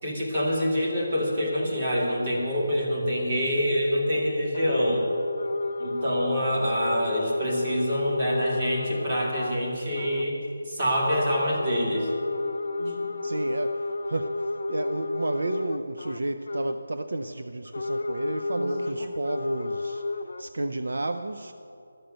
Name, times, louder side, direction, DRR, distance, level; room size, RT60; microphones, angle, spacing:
voice 1, 0.0-5.0 5.8-10.4 10.7-12.1 12.8-12.9 18.5-19.1, equal, 25° right, -3 dB, 2.3 m, -26 dB
sound 1, 4.5-9.6 9.9-10.3 11.5-16.8 17.7-20.4, left 2 dB, 60° left, 0.7 m, -31 dB
voice 2, 13.2-20.0 20.4-21.5, right 2 dB, 65° right, 7 dB, 0.5 m, -32 dB
13.0 x 6.6 x 8.9 m, 2.7 s
figure-of-eight pair, 175°, 0 cm